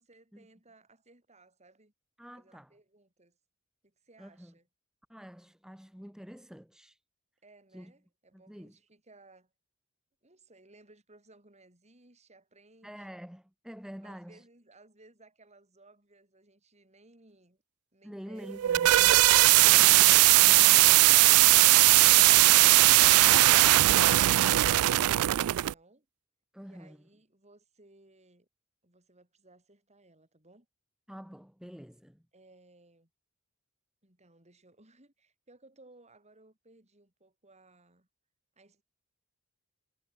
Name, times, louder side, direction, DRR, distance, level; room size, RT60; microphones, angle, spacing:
voice 1, 0.0-1.9 2.3-3.4 3.8-4.7 7.4-9.5 10.2-13.1 14.0-17.6 17.9-19.5 26.6-28.5 28.8-30.7 32.3-33.1 34.0-38.1 38.6-38.8, right 2 dB, 30° right, 6.8 m, -60 dB
voice 2, 2.2-2.7 4.2-4.5 5.1-7.0 7.7-7.9 8.3-8.8 12.8-14.4 18.0-19.2 19.7-21.4 26.5-27.1 31.1-32.2, equal, 5° right, 1.0 m, -47 dB
sound 1, 18.4-25.7, right 18 dB, 80° right, 0.3 m, -19 dB
head